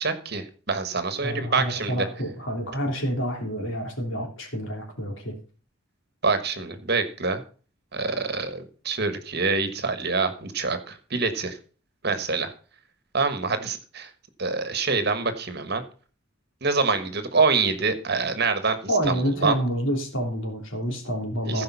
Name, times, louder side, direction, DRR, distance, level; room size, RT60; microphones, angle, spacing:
voice 1, 0.0-2.0 6.2-7.4 7.9-11.6 12.0-12.5 13.1-14.1 14.4-15.8 16.6-18.8 19.4-19.5 21.5-21.6, right 4 dB, 50° right, 10 dB, 1.5 m, -25 dB
voice 2, 1.2-5.3 18.9-21.6, equal, 60° left, 1 dB, 3.4 m, -28 dB
15.0 x 5.4 x 5.7 m, 0.39 s
head